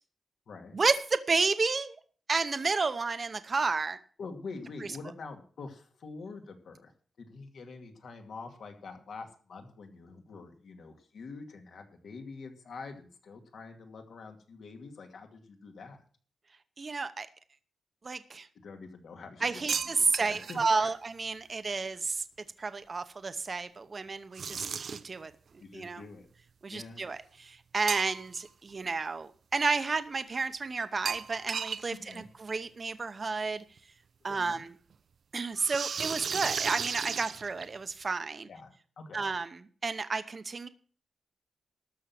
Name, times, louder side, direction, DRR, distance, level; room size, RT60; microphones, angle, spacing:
voice 1, 0.7-2.0 2.3-4.0 16.8-17.3 18.0-18.5 19.4-22.2 22.6-25.3 25.7-26.0 26.6-33.6 34.2-34.8 35.3-38.5 39.1-39.5 39.8-40.7, right 4 dB, 35° right, 11 dB, 0.8 m, -31 dB
voice 2, 4.2-6.9 7.2-16.0 18.5-20.9 25.6-26.3 26.7-27.0 31.9-32.3 34.3-34.6 38.5-39.3, left 4 dB, 75° left, 4 dB, 2.3 m, -46 dB
sound 1, 19.7-20.7 24.3-25.2 27.9-28.5 28.8-28.9 31.1-32.2 32.5-32.6 33.8-33.9 35.6-37.9, right 6 dB, 60° right, 0.5 m, -34 dB
13.0 x 6.2 x 7.5 m, 0.43 s
wide cardioid pair, 140°, 0 cm